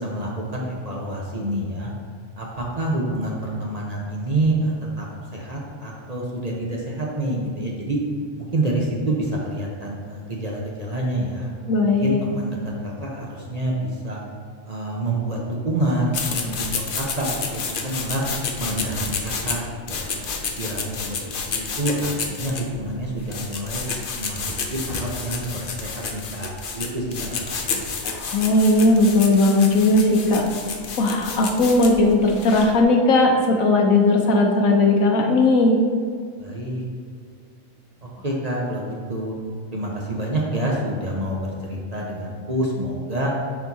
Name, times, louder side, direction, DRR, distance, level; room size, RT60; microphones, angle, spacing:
voice 1, 0.0-1.9 2.4-5.1 5.3-8.0 8.4-11.5 12.0-12.6 12.8-14.2 14.6-16.5 16.9-18.2 18.6-20.2 20.6-23.8 24.2-27.9 36.4-36.8 38.0-39.3 39.7-43.3, right 1 dB, 35° right, -3 dB, 0.9 m, -27 dB
voice 2, 11.7-12.2 28.0-30.4 31.0-35.8, left 2 dB, 80° left, 1 dB, 1.3 m, -17 dB
sound 1, 16.1-32.8, left 4 dB, 50° left, 0.7 m, -30 dB
9.9 x 4.5 x 2.8 m, 2.1 s
omnidirectional pair, 1.4 m